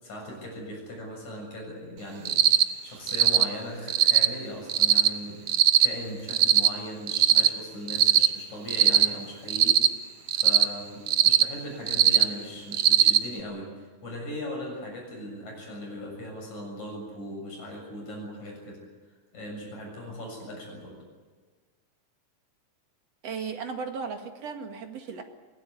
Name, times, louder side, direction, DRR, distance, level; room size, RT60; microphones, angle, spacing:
voice 1, 0.0-2.4 2.8-5.5 5.8-9.8 10.3-18.8 19.3-21.0, equal, 60° left, 0 dB, 8.5 m, -39 dB
Cricket, 2.2-2.6 3.1-3.4 3.9-4.3 4.7-5.1 5.5-5.9 6.3-6.7 7.1-7.5 7.9-8.3 8.7-9.1 9.5-9.9 10.3-10.6 11.1-11.4 11.9-12.2 12.7-13.2, right 10 dB, 85° right, 1.1 m, -19 dB
voice 2, 23.2-25.2, right 5 dB, 55° right, 5 dB, 3.0 m, -35 dB
23.5 x 17.0 x 10.0 m, 1.5 s
omnidirectional pair, 3.7 m